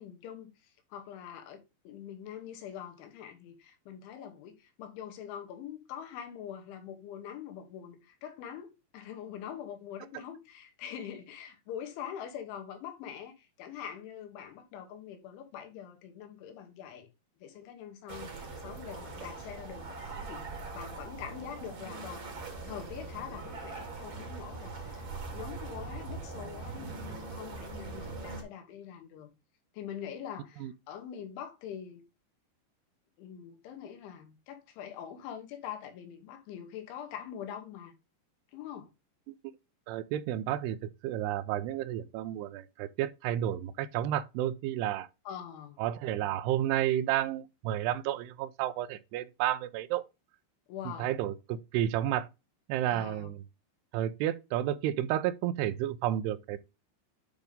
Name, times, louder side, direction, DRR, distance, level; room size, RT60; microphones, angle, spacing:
voice 1, 0.0-17.1 17.4-22.2 22.6-29.3 29.7-32.0 33.2-37.9 38.5-38.9 45.3-45.8 50.7-51.1 52.9-53.3, left 9 dB, 90° left, 3.9 m, -44 dB
sound 1, 18.1-28.4, right 3 dB, 40° right, 3.1 m, -42 dB
voice 2, 39.9-40.8 41.0-45.1 45.8-50.0 50.9-52.3 52.7-53.4 53.9-56.6, right 12 dB, 85° right, 2.4 m, -31 dB
9.0 x 4.0 x 3.6 m
omnidirectional pair, 5.3 m